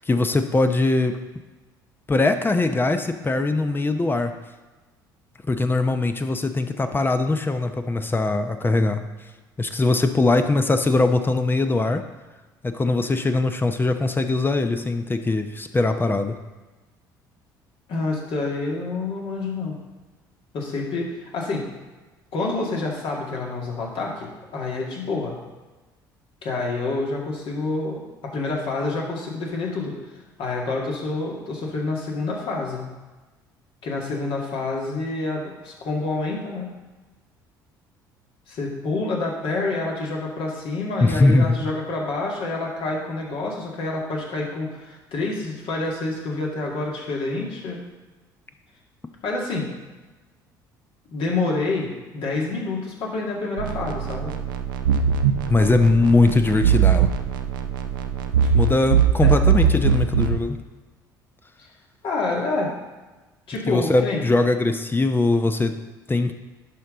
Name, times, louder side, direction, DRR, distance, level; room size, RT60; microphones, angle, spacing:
voice 1, 0.1-1.2 2.1-4.3 5.5-9.1 9.6-12.0 12.6-16.4 41.0-41.6 55.5-57.1 58.5-60.6 63.7-65.8 66.1-66.3, left 2 dB, 20° left, 7 dB, 0.7 m, -21 dB
voice 2, 17.9-19.8 20.5-21.6 22.3-25.3 26.4-30.0 30.4-32.9 33.8-36.7 38.5-47.8 49.2-49.7 51.1-54.3 62.0-62.7 63.5-64.2, left 3 dB, 55° left, -2 dB, 2.2 m, -27 dB
sound 1, 53.6-60.4, right 7 dB, 80° right, 0.5 m, -21 dB
11.0 x 5.4 x 3.9 m, 1.2 s
hypercardioid pair, 60°, 11 cm